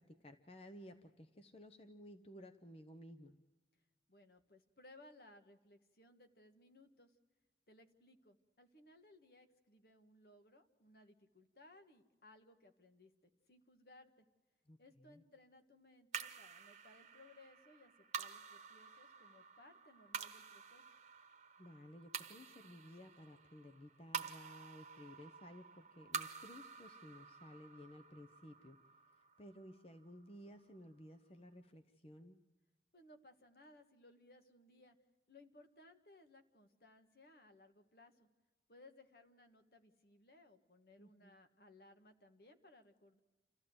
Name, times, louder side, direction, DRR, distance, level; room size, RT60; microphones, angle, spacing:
voice 1, 0.0-3.4 14.7-15.2 21.6-28.8 29.1-32.4 41.0-41.3, equal, 35° left, 7 dB, 0.8 m, -56 dB
voice 2, 4.1-7.2 7.7-13.1 13.5-14.2 14.8-20.8 32.9-35.0 35.3-38.3 38.7-43.2, left 2 dB, 60° left, 7 dB, 1.6 m, -63 dB
sound 1, 16.1-30.6, right 6 dB, 40° right, 1.1 m, -49 dB
28.0 x 14.5 x 7.9 m, 1.2 s
head